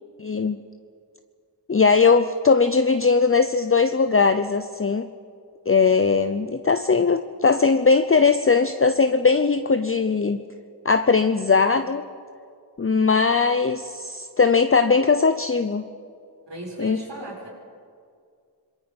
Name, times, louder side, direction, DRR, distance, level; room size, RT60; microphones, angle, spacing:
voice 1, 0.2-0.6 1.7-5.1 5.7-10.4 10.8-12.0 12.8-15.8 16.8-17.0, left 4 dB, 30° left, 9 dB, 0.7 m, -19 dB
voice 2, 16.5-17.5, right 1 dB, 80° right, -2 dB, 5.9 m, -36 dB
26.0 x 22.0 x 5.3 m, 2.2 s
wide cardioid pair, 65°, 42 cm